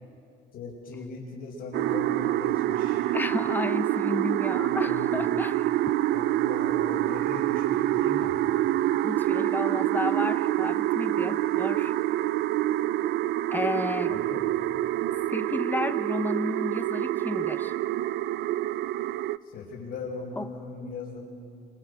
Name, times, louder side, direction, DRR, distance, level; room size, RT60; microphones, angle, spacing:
voice 1, 0.5-3.0 4.5-5.3 6.1-8.4 14.0-14.4 19.4-21.2, left 3 dB, 65° left, -6 dB, 4.5 m, -39 dB
sound 1, 1.7-19.4, right 14 dB, 75° right, 0.5 m, -26 dB
voice 2, 3.1-5.6 9.0-11.9 13.5-14.1 15.3-17.7 20.4-20.5, left 2 dB, 10° left, 11 dB, 0.9 m, -32 dB
26.0 x 23.0 x 6.4 m, 2.6 s
cardioid pair, 110°, 17 cm